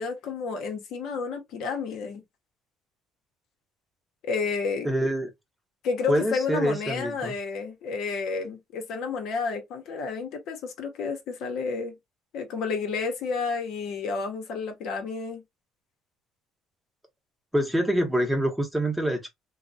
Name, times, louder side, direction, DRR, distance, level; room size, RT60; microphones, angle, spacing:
voice 1, 0.0-2.2 4.2-4.9 5.8-11.9 12.3-15.4, left 4 dB, 70° left, 0.7 m, -31 dB
voice 2, 4.8-5.3 6.1-7.3 17.5-19.3, equal, 5° right, 0.8 m, -25 dB
3.1 x 2.0 x 2.5 m
cardioid pair, 105°, 0 cm